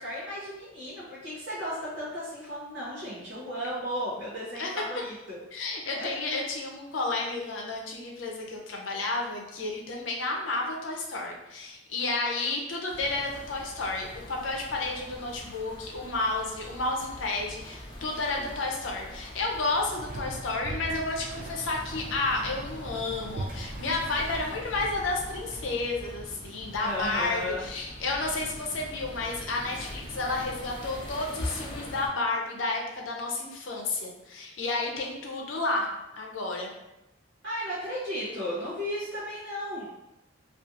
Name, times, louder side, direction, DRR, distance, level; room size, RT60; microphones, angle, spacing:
voice 1, 0.0-5.4 5.9-6.4 18.0-18.5 26.8-27.6 37.4-39.9, equal, 60° right, -10 dB, 0.7 m, -35 dB
voice 2, 5.5-35.9 36.1-36.7, left 3 dB, 80° left, 0 dB, 0.5 m, -31 dB
sound 1, 12.9-32.1, left 1 dB, 25° left, 0.5 m, -43 dB
sound 2, 19.8-25.7, right 2 dB, 40° right, 0.3 m, -41 dB
2.6 x 2.4 x 2.4 m, 0.93 s
head